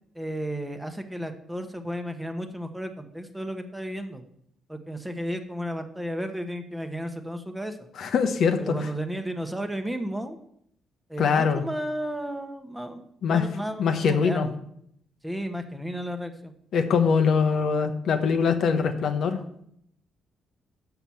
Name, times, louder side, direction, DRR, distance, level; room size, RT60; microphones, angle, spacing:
voice 1, 0.1-4.3 4.7-7.8 8.6-10.4 11.1-14.5 15.2-16.5, equal, 5° right, 6 dB, 0.9 m, -33 dB
voice 2, 8.0-8.7 11.2-11.6 13.2-13.4 13.8-14.5 16.7-19.4, left 6 dB, 65° left, 7 dB, 0.9 m, -23 dB
6.0 x 5.7 x 7.1 m, 0.70 s
cardioid pair, 90°, 0 cm